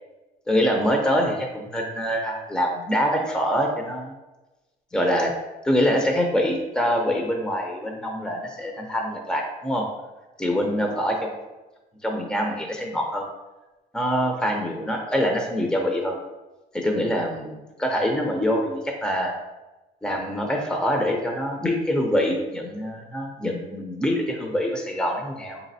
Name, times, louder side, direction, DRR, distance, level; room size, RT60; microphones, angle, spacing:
voice 1, 0.5-4.1 4.9-5.3 5.6-9.8 10.4-11.3 12.0-13.3 13.9-16.2 16.7-19.3 20.0-25.6, equal, 5° left, 2 dB, 0.5 m, -25 dB
4.9 x 4.1 x 2.7 m, 1.1 s
cardioid pair, 110°, 17 cm